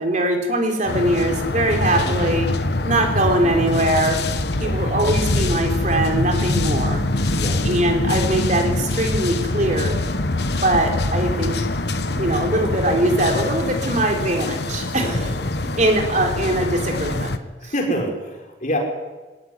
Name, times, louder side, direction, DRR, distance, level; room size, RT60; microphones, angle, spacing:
voice 1, 0.0-2.5 2.8-4.2 4.6-7.3 7.6-10.0 10.5-11.6 12.1-15.3 15.8-17.3 17.6-17.7, right 1 dB, 40° right, 3 dB, 3.7 m, -21 dB
sound 1, 0.9-17.4, left 2 dB, 60° left, 1.3 m, -24 dB
Accelerating revving vroom, 4.3-11.5, equal, 20° left, 2.0 m, -33 dB
voice 2, 15.0-15.4 17.7-18.8, equal, 40° left, 1 dB, 5.1 m, -27 dB
21.0 x 18.5 x 9.8 m, 1.2 s
head